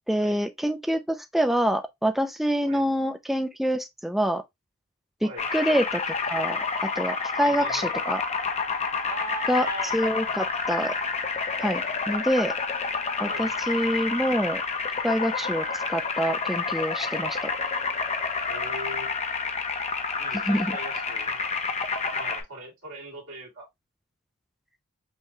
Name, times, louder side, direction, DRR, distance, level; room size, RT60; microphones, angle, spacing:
voice 1, 0.1-4.4 5.2-6.0 6.3-8.2 9.5-9.7 9.9-10.9 11.6-12.5 13.2-14.6 15.0-17.5 20.4-20.7, equal, ahead, 0.3 m, -26 dB
sound 1, 5.4-22.4, left 4 dB, 30° left, 0.7 m, -29 dB
voice 2, 7.4-7.9 9.0-10.4 13.2-13.5 18.4-19.1 20.2-21.5 22.1-23.7, right 2 dB, 65° right, 2.2 m, -40 dB
5.6 x 2.2 x 2.8 m
head